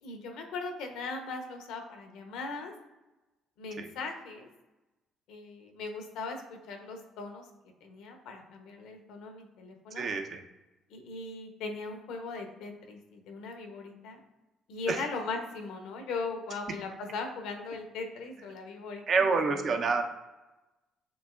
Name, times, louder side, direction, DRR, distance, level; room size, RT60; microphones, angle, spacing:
voice 1, 0.0-2.7 3.6-4.5 5.3-7.5 7.8-10.1 10.9-14.2 14.7-19.8, left 3 dB, 70° left, 4 dB, 0.8 m, -39 dB
voice 2, 10.0-10.4 14.9-15.0 19.1-20.0, right 4 dB, 50° right, 5 dB, 0.7 m, -27 dB
7.1 x 2.8 x 2.4 m, 1.0 s
hypercardioid pair, 50°, 0 cm